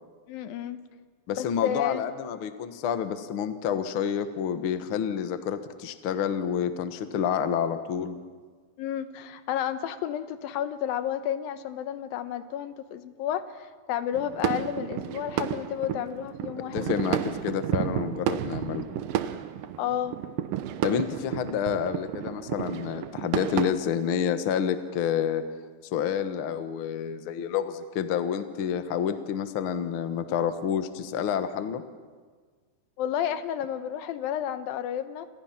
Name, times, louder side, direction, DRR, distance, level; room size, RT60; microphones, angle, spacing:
voice 1, 0.3-0.8 1.3-2.0 8.8-17.0 19.8-20.2 33.0-35.3, left 10 dB, 80° left, 11 dB, 2.8 m, -31 dB
voice 2, 1.3-8.2 16.7-18.8 20.8-25.4 25.9-31.8, left 8 dB, 60° left, 9 dB, 1.4 m, -29 dB
sound 1, 14.1-23.7, right 11 dB, 75° right, 2.6 m, -32 dB
28.5 x 28.0 x 5.9 m, 1.6 s
omnidirectional pair, 4.1 m